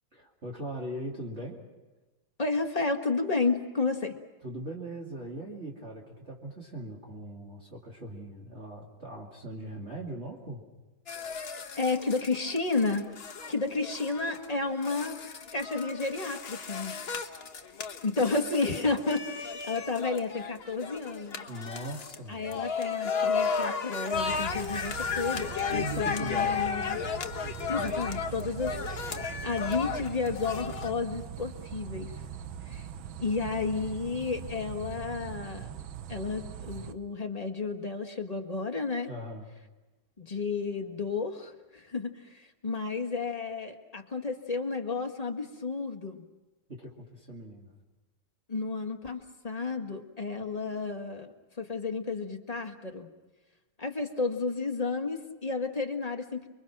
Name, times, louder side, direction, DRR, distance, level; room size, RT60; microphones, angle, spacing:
voice 1, 0.1-1.6 4.4-10.6 21.5-22.5 25.7-26.6 39.1-39.5 46.7-47.7, right 1 dB, 35° right, -2 dB, 2.9 m, -40 dB
voice 2, 2.4-4.1 11.8-13.1 13.5-15.2 15.5-17.0 18.0-21.4 22.3-27.0 27.7-32.2 32.6-32.9 33.2-35.7 36.1-39.1 40.2-46.2 48.5-53.1 53.8-56.5, left 4 dB, 20° left, 4 dB, 1.6 m, -32 dB
sound 1, 11.1-30.9, left 6 dB, 40° left, 1.1 m, -34 dB
sound 2, 24.1-36.9, right 9 dB, 85° right, 1.8 m, -41 dB
29.5 x 23.0 x 6.1 m, 1.2 s
omnidirectional pair, 2.1 m